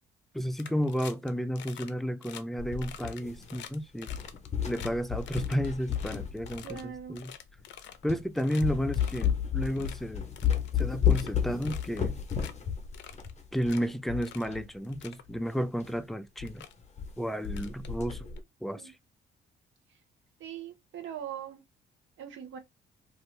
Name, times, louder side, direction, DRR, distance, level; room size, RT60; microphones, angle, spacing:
voice 1, 0.3-4.1 4.7-7.3 8.0-10.3 10.8-12.1 13.5-16.6 17.2-18.3 18.6-18.9, equal, ahead, 0.3 m, -32 dB
sound 1, 0.6-1.3 1.6-1.9 2.2-2.4 2.8-4.9 5.2-6.8 7.2-8.1 8.4-8.6 8.9-9.3 9.6-10.0 10.4-11.3 11.6-12.0 12.3-12.5 12.9-13.8 14.2-14.5 14.8-15.2 16.0-16.1 16.5-16.7 17.4-18.4, left 9 dB, 70° left, 0.6 m, -47 dB
sound 2, 2.6-3.7 4.0-7.0 7.6-7.7 8.1-8.3 8.6-14.7 14.9-15.0 15.3-15.4 15.8-16.0 16.4-16.5 16.8-17.2 17.4-18.4, left 8 dB, 35° left, 0.9 m, -32 dB
voice 2, 6.6-7.2 18.7-18.9 20.4-21.6 22.2-22.6, right 9 dB, 75° right, 0.9 m, -41 dB
2.7 x 2.5 x 3.2 m
cardioid pair, 90°, 20 cm